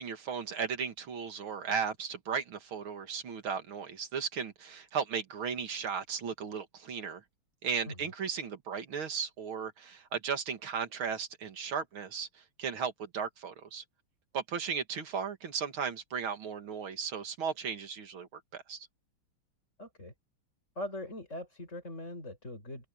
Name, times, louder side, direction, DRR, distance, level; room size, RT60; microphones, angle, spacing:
voice 1, 0.0-7.2 7.6-13.8 14.3-18.9, right 6 dB, 70° right, 2.8 m, -36 dB
voice 2, 19.8-20.1 20.8-22.9, left 1 dB, 30° left, 7.8 m, -41 dB
omnidirectional pair, 2.4 m